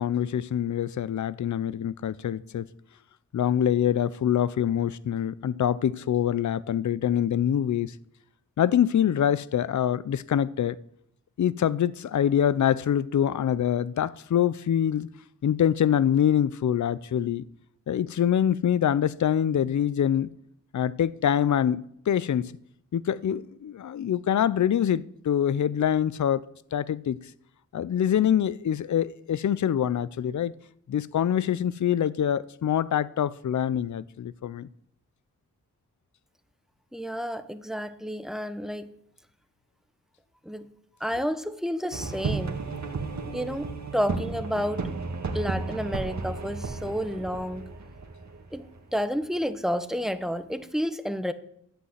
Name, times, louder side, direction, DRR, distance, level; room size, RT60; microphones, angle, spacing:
voice 1, 0.0-2.7 3.3-7.9 8.6-10.8 11.4-15.1 15.4-17.5 17.9-20.3 20.7-22.5 22.9-26.4 26.7-27.2 27.7-30.6 30.9-34.7, left 9 dB, 60° left, 0.5 m, -25 dB
voice 2, 36.9-38.9 40.4-40.7 41.0-42.7 43.3-44.9 45.3-47.7 48.5-51.3, equal, ahead, 0.9 m, -30 dB
sound 1, 41.9-49.4, right 4 dB, 60° right, 1.8 m, -33 dB
11.5 x 8.1 x 8.0 m
wide cardioid pair, 90°, 33 cm